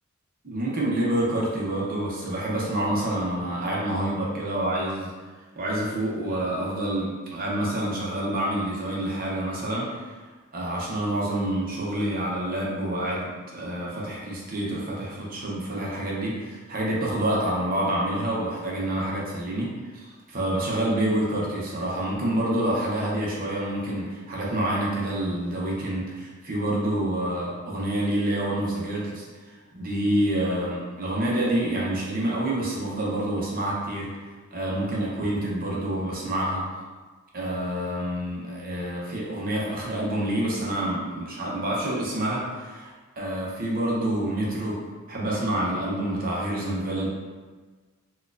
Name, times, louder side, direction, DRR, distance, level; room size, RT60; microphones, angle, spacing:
voice 1, 0.4-5.1 5.6-10.1 10.5-36.6 37.3-44.8 45.1-47.1, right 1 dB, 45° right, -5 dB, 0.7 m, -27 dB
4.2 x 2.3 x 2.4 m, 1.4 s
head